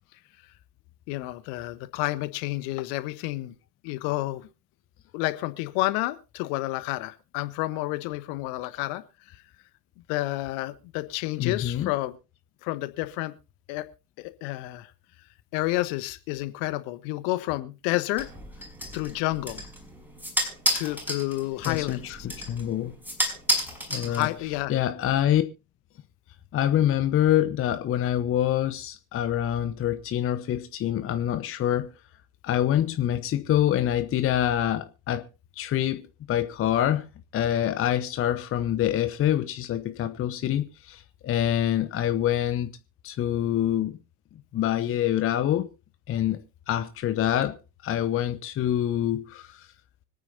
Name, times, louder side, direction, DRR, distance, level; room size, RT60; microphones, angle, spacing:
voice 1, 1.1-3.5 3.8-4.5 5.1-9.4 10.1-12.2 12.6-13.3 13.7-13.9 14.2-14.9 15.5-18.3 18.9-19.6 20.7-22.2 24.0-24.7, left 18 dB, 50° left, 1.3 m, -30 dB
voice 2, 11.4-11.9 21.6-22.9 23.9-24.3 24.7-25.4 26.5-31.9 32.4-35.3 35.6-36.0 36.3-42.7 43.0-44.0 44.5-45.7 46.1-47.6 47.8-49.7, left 11 dB, 25° left, 1.0 m, -26 dB
sound 1, 18.2-24.6, equal, 5° right, 5.7 m, -31 dB
25.5 x 9.5 x 2.7 m
figure-of-eight pair, 75°, 50 cm